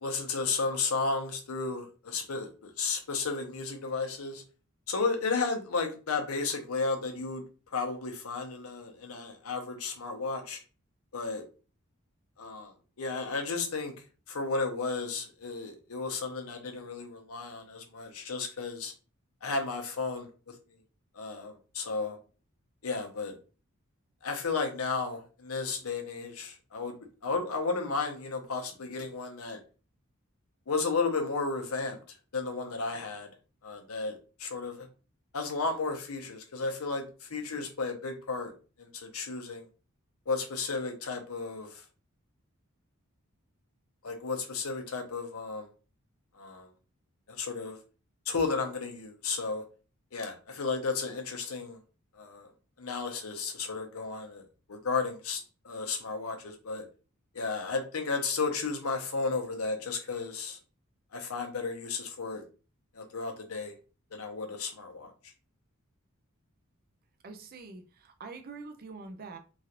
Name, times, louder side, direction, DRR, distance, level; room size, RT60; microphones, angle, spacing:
voice 1, 0.0-4.4 4.9-7.4 7.7-10.6 11.1-11.4 12.4-13.9 14.3-18.9 19.4-20.3 21.1-22.2 22.8-23.3 24.2-27.0 27.2-29.6 30.7-32.0 32.3-33.3 33.6-34.9 35.3-38.5 38.8-39.7 40.3-41.8 44.0-45.7 46.4-46.7 47.3-47.8 48.3-49.6 50.1-51.8 52.2-52.5 52.8-54.4 54.7-55.4 55.6-56.9 57.3-60.6 61.1-62.4 62.9-63.7 64.1-65.1, left 4 dB, 90° left, 0.7 m, -33 dB
voice 2, 67.2-69.4, right 4 dB, 45° right, 0.5 m, -45 dB
3.0 x 2.4 x 2.9 m
head